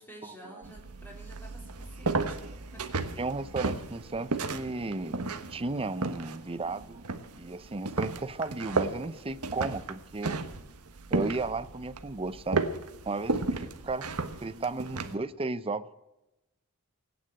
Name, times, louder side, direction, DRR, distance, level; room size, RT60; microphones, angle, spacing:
voice 1, 0.0-2.4 2.7-3.0, right 1 dB, 10° left, 1 dB, 3.4 m, -51 dB
sound 1, 0.6-15.2, right 3 dB, 80° right, 1.2 m, -34 dB
voice 2, 3.2-7.0 7.3-10.4 11.1-12.7 13.0-15.9, right 3 dB, 25° right, 14 dB, 0.7 m, -34 dB
18.0 x 9.6 x 7.7 m, 0.97 s
head